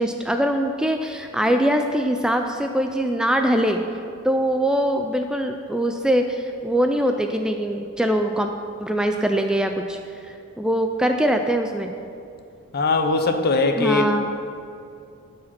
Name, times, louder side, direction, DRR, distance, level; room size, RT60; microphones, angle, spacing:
voice 1, 0.0-3.8 4.2-8.5 8.8-10.0 10.2-11.9 13.8-14.2, equal, 5° right, 5 dB, 0.3 m, -22 dB
voice 2, 12.7-14.0, left 3 dB, 45° left, 7 dB, 0.7 m, -20 dB
12.5 x 5.0 x 5.9 m, 2.5 s
head